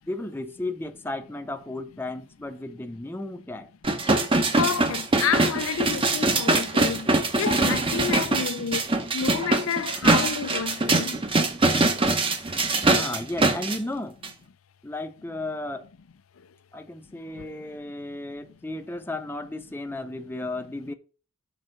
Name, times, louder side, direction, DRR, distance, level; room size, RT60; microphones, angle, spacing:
voice 1, 0.1-3.7 12.9-14.2 14.8-15.9 16.7-20.9, left 2 dB, 10° left, 0.5 m, -34 dB
sound 1, 3.8-13.8 14.2-14.3, right 2 dB, 25° right, 0.8 m, -23 dB
voice 2, 4.5-11.2 16.4-16.5 17.3-17.6, left 7 dB, 80° left, 0.5 m, -30 dB
6.2 x 4.7 x 6.5 m
head